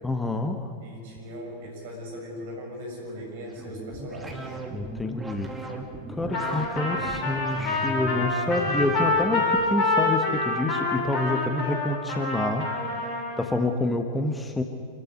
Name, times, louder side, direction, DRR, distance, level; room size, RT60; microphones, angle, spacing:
voice 1, 0.0-0.7 4.7-5.7 6.1-12.7 13.0-14.6, left 2 dB, 10° left, 5 dB, 1.4 m, -28 dB
voice 2, 0.8-4.6 5.5-5.8, equal, 55° right, 0 dB, 7.5 m, -39 dB
sound 1, 3.5-9.8, right 2 dB, 10° right, 2.6 m, -38 dB
Trumpet, 6.3-13.4, left 2 dB, 40° left, 7.0 m, -27 dB
27.0 x 14.0 x 9.7 m, 2.3 s
figure-of-eight pair, 90°, 0 cm